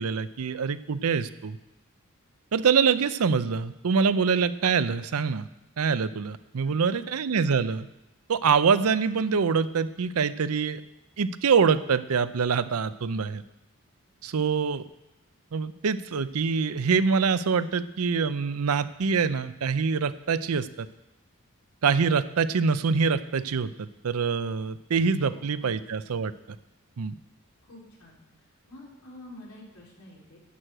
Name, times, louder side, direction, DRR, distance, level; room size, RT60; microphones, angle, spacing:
voice 1, 0.0-1.6 2.5-5.5 5.8-7.9 8.3-10.8 11.2-13.4 14.2-14.8 15.5-20.9 21.8-26.3 27.0-27.1, right 5 dB, 85° right, 14 dB, 0.6 m, -25 dB
voice 2, 6.6-7.2 25.2-25.8 27.6-28.2 28.7-30.4, left 1 dB, 85° left, -4 dB, 4.2 m, -48 dB
11.0 x 6.4 x 8.9 m, 0.93 s
head